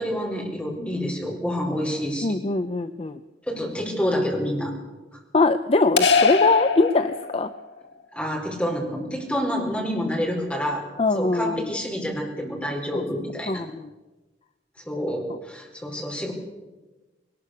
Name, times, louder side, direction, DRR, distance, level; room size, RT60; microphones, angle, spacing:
voice 1, 0.0-2.3 3.5-4.7 5.1-5.2 8.1-10.8 11.1-13.6 14.8-16.3, equal, 5° left, 0 dB, 4.6 m, -28 dB
voice 2, 2.2-3.2 5.3-7.5 11.0-11.7 12.9-13.0 13.5-13.7, left 3 dB, 35° left, 10 dB, 0.6 m, -22 dB
sound 1, 6.0-7.6, left 5 dB, 85° left, 1.7 m, -21 dB
21.0 x 19.5 x 6.7 m, 1.2 s
head